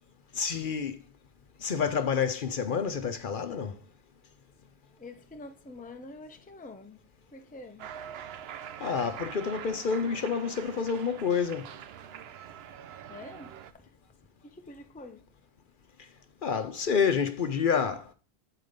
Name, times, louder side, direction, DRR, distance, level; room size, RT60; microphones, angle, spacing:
voice 1, 0.3-1.0 1.6-3.8 8.8-11.7 16.4-18.1, left 6 dB, 55° left, 0.8 m, -28 dB
voice 2, 5.0-7.0 7.3-7.9 13.1-13.9 14.4-15.2, left 2 dB, 10° left, 0.6 m, -46 dB
Cheering, 7.8-13.7, right 9 dB, 75° right, 0.8 m, -44 dB
8.2 x 4.7 x 5.1 m
omnidirectional pair, 1.1 m